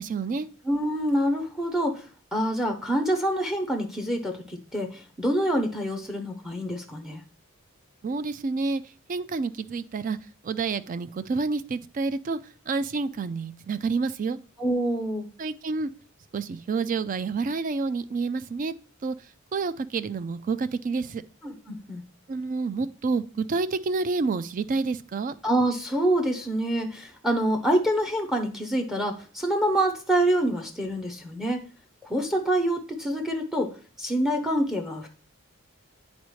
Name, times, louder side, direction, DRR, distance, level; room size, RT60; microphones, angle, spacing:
voice 1, 0.0-0.5 8.0-8.8 9.1-10.2 10.4-12.4 12.7-14.4 15.4-15.9 16.3-18.7 19.0-19.1 19.5-21.2 22.3-25.3, right 4 dB, 40° right, 13 dB, 0.3 m, -28 dB
voice 2, 0.6-2.0 2.3-7.2 14.6-15.3 21.4-22.0 25.4-31.6 32.0-35.1, right 1 dB, ahead, 3 dB, 0.6 m, -26 dB
9.7 x 4.1 x 3.1 m, 0.39 s
head